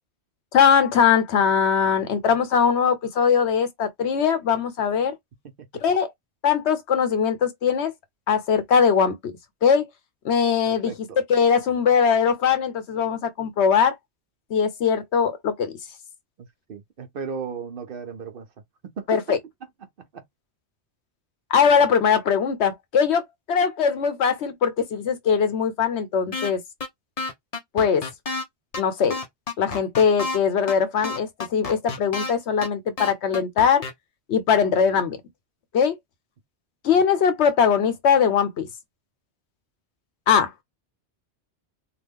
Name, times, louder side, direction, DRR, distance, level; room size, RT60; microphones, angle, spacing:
voice 1, 0.5-5.1 5.8-6.1 6.4-7.9 8.3-9.2 9.6-9.9 10.2-10.9 11.3-14.0 14.5-15.7 19.1-19.4 21.5-26.6 27.7-28.0 28.8-29.2 29.6-33.8 34.3-35.2 35.7-36.0 36.8-38.7 40.3-40.5, left 7 dB, 75° left, 1.0 m, -21 dB
voice 2, 10.7-11.2 16.4-18.5 18.8-19.2 20.1-20.2 34.9-35.0 36.9-37.0, right 5 dB, 60° right, 0.7 m, -36 dB
sound 1, 26.3-26.5 26.8-26.9 27.2-28.4 28.7-28.8 29.1-30.4 30.7-30.8 31.0-32.3 32.6-32.7 33.0-33.9, left 3 dB, 40° left, 0.6 m, -29 dB
3.0 x 2.2 x 3.5 m
omnidirectional pair, 1.1 m